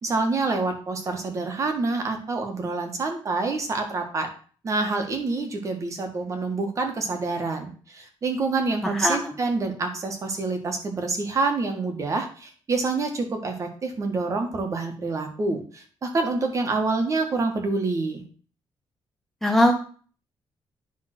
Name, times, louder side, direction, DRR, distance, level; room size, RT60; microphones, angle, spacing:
voice 1, 0.0-4.3 4.6-18.2, right 3 dB, 35° right, 4 dB, 1.6 m, -27 dB
voice 2, 8.8-9.4 19.4-19.7, left 1 dB, 5° left, 0 dB, 0.9 m, -21 dB
10.0 x 3.8 x 6.0 m, 0.42 s
cardioid pair, 170°, 9 cm